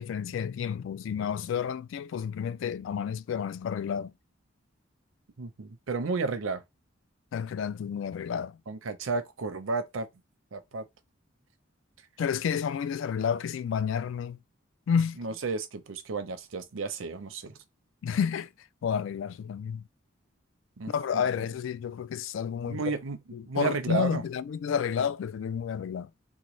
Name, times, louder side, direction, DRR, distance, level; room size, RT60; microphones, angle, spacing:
voice 1, 0.0-4.1 7.3-8.6 12.2-14.4 14.9-15.2 18.0-18.5 18.8-19.8 20.9-22.9 23.3-26.1, left 7 dB, 70° left, 0.3 m, -30 dB
voice 2, 5.4-6.6 8.7-10.1 10.5-10.9 15.2-17.5 20.8-21.2 22.7-23.2 23.4-24.2, right 4 dB, 85° right, 0.6 m, -32 dB
3.8 x 2.2 x 3.1 m
head